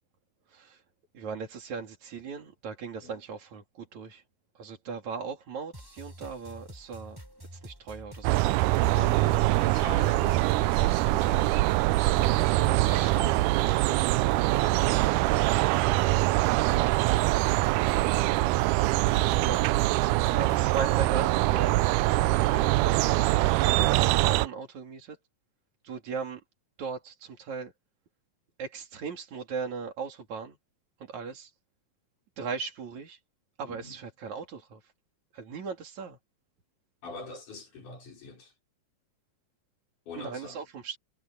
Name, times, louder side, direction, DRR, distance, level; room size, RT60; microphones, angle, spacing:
voice 1, 0.5-0.8 1.1-4.2 4.6-7.2 7.5-9.4 19.1-19.6 20.0-21.8 22.2-25.2 25.8-26.4 26.8-27.7 28.6-30.6 31.1-31.5 32.4-33.2 33.6-34.9 35.3-36.2 40.2-41.0, right 5 dB, 65° right, 4.2 m, -38 dB
sound 1, 5.7-21.0, equal, 5° right, 5.9 m, -47 dB
sound 2, 8.2-24.5, right 19 dB, 85° right, 2.1 m, -24 dB
voice 2, 8.9-16.4 16.6-17.3 18.1-18.5 33.7-34.0 37.0-38.5 40.1-40.6, left 3 dB, 80° left, 6.7 m, -45 dB
omnidirectional pair, 3.5 m